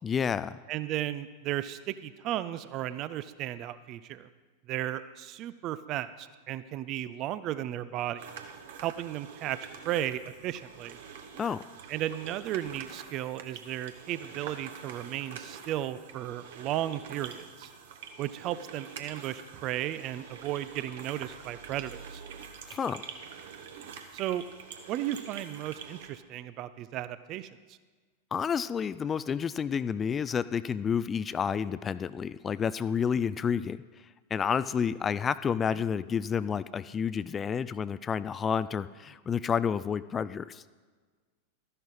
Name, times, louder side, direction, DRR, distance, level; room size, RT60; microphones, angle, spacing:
voice 1, 0.0-0.6 11.4-11.6 22.7-23.1 28.3-33.8 34.3-40.6, left 7 dB, 20° left, 16 dB, 0.3 m, -30 dB
voice 2, 0.7-4.3 4.7-8.3 8.8-9.6 9.8-11.0 11.9-17.7 18.2-22.2 24.1-24.4 24.9-27.8 35.7-35.8, right 13 dB, 35° right, 14 dB, 0.5 m, -35 dB
sound 1, 8.2-26.1, right 7 dB, 55° right, 1.2 m, -46 dB
13.0 x 11.0 x 4.2 m, 1.4 s
figure-of-eight pair, 90°, 0 cm